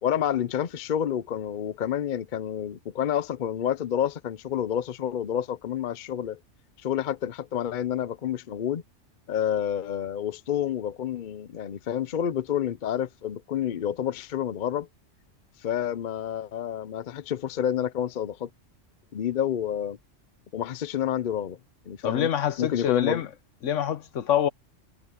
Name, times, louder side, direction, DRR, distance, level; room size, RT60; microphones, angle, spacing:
voice 1, 0.0-6.4 6.8-8.8 9.3-14.9 15.6-18.5 19.1-20.0 20.5-21.6 21.9-22.3 22.6-23.2, left 9 dB, 50° left, 0.7 m, -29 dB
voice 2, 22.0-23.3 23.6-24.5, left 9 dB, 75° left, 1.2 m, -26 dB
omnidirectional pair, 1.3 m